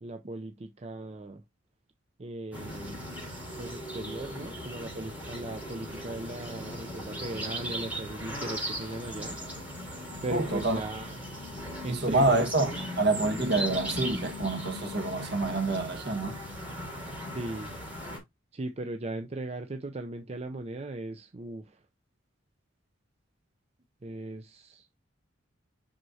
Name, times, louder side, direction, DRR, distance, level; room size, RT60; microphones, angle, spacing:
voice 1, 0.0-1.4 2.2-3.1 3.6-9.4 10.2-11.2 11.8-12.8 17.3-17.8 18.5-21.8 24.0-25.0, right 2 dB, 35° right, 0.5 m, -38 dB
sound 1, 2.5-18.2, equal, 10° right, 4.6 m, -38 dB
voice 2, 10.3-10.8 11.9-12.7 13.0-16.4, right 2 dB, 60° right, 1.6 m, -27 dB
6.3 x 5.8 x 2.7 m
head